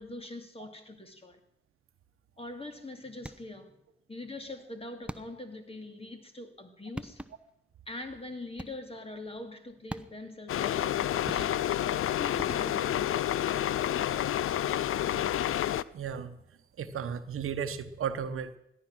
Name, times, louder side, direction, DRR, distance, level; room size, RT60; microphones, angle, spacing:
voice 1, 0.0-1.4 2.4-3.8 4.1-7.2 7.9-11.5 12.1-13.6, left 2 dB, 25° left, 2.6 m, -43 dB
sound 1, 3.2-3.7 5.1-5.6 6.6-6.7 7.0-7.6 8.6-9.0 9.9-10.4 11.3-11.9 12.4-13.1, right 1 dB, 5° right, 0.9 m, -43 dB
sound 2, 10.5-15.8, left 11 dB, 85° left, 0.5 m, -29 dB
voice 2, 15.9-16.4 16.8-18.6, right 7 dB, 85° right, 1.0 m, -34 dB
17.5 x 11.5 x 6.2 m
cardioid pair, 45°, 21 cm